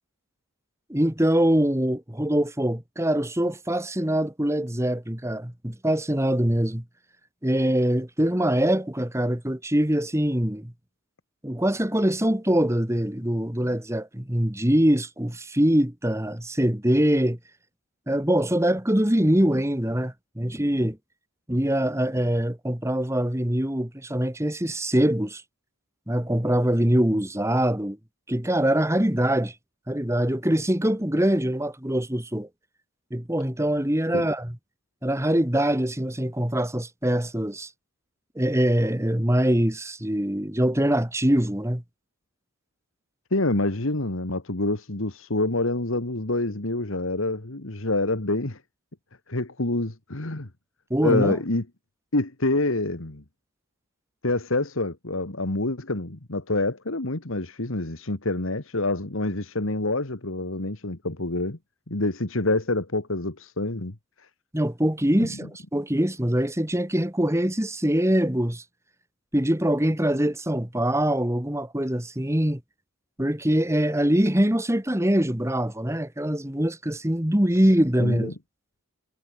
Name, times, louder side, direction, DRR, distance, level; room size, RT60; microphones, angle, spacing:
voice 1, 0.9-6.8 7.4-10.7 11.4-17.4 18.1-21.0 21.5-25.4 26.1-28.0 28.3-29.5 29.9-32.5 33.1-34.6 35.0-37.7 38.3-41.8 50.9-51.4 64.5-68.6 69.3-72.6 73.2-78.3, right 1 dB, 10° right, 1.7 m, -23 dB
voice 2, 43.3-48.6 49.3-50.5 51.0-51.6 52.1-53.2 54.2-61.6 61.9-64.0 65.2-65.3 78.0-78.3, left 2 dB, 65° left, 1.9 m, -27 dB
head